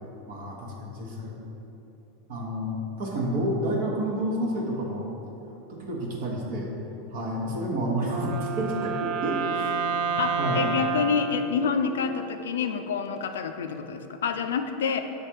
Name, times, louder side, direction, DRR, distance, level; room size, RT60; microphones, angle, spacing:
voice 1, 0.3-1.3 2.3-5.1 5.7-6.7 7.1-9.8 10.0-10.7, right 1 dB, 65° right, -3 dB, 1.1 m, -30 dB
Wind instrument woodwind instrument, 8.0-12.3, right 6 dB, 50° right, 0.4 m, -30 dB
voice 2, 10.2-15.0, left 6 dB, 75° left, 7 dB, 0.4 m, -27 dB
6.6 x 3.3 x 4.5 m, 3.0 s
hypercardioid pair, 90°, 0 cm